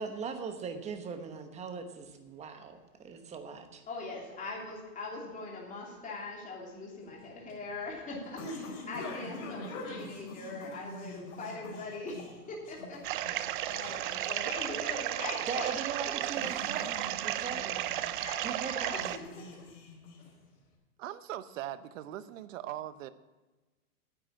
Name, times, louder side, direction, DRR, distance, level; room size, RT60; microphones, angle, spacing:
voice 1, 0.0-3.8 15.5-16.9 17.2-17.9 18.4-18.9, right 5 dB, 15° right, 7 dB, 1.0 m, -40 dB
voice 2, 3.9-15.8 18.1-19.2, left 3 dB, 20° left, -2 dB, 3.0 m, -41 dB
sound 1, 7.0-20.6, left 2 dB, 60° left, 4.9 m, -45 dB
sound 2, 13.0-19.2, right 14 dB, 35° right, 0.5 m, -34 dB
voice 3, 21.0-23.1, right 12 dB, 60° right, 14 dB, 0.9 m, -40 dB
9.9 x 8.9 x 8.6 m, 1.2 s
supercardioid pair, 145°, 43 cm